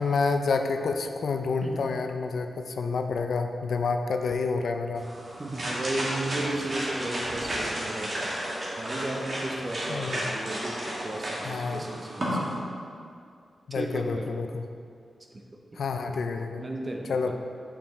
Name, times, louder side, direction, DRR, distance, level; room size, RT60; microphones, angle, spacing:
voice 1, 0.0-5.1 9.9-10.3 11.4-11.8 13.7-14.7 15.8-16.6 17.1-17.3, left 4 dB, 75° left, 6 dB, 0.4 m, -28 dB
sound 1, 5.0-12.5, equal, 45° right, 1.4 m, -33 dB
voice 2, 5.4-8.3 8.8-12.6 13.7-14.3 15.3-15.4 15.7-15.8 16.6-17.3, right 2 dB, 30° right, 2 dB, 0.7 m, -34 dB
sound 2, 7.1-8.0, right 2 dB, 70° right, 0.5 m, -41 dB
6.6 x 5.5 x 3.1 m, 2.3 s
wide cardioid pair, 110°, 0 cm